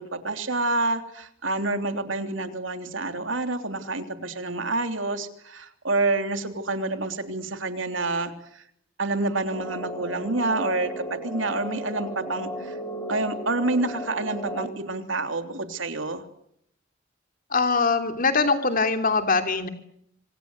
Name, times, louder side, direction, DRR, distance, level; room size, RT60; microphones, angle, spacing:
voice 1, 0.0-8.6 9.0-12.7 13.1-16.2, right 2 dB, 75° right, 8 dB, 3.2 m, -28 dB
sound 1, 9.5-14.7, equal, 15° left, 3.9 m, -35 dB
voice 2, 17.5-19.7, left 4 dB, 45° left, 8 dB, 3.2 m, -22 dB
28.0 x 26.0 x 8.0 m, 0.72 s
head